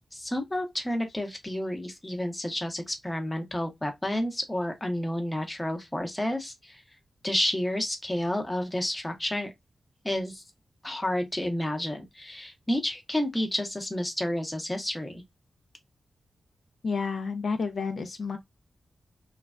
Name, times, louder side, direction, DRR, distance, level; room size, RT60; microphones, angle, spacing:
voice 1, 0.1-6.8 7.2-9.5 10.0-10.4 10.8-15.2, left 1 dB, 10° left, 0.7 m, -30 dB
voice 2, 16.8-18.4, left 4 dB, 60° left, 0.4 m, -30 dB
3.2 x 2.1 x 2.4 m
wide cardioid pair, 120°, 0 cm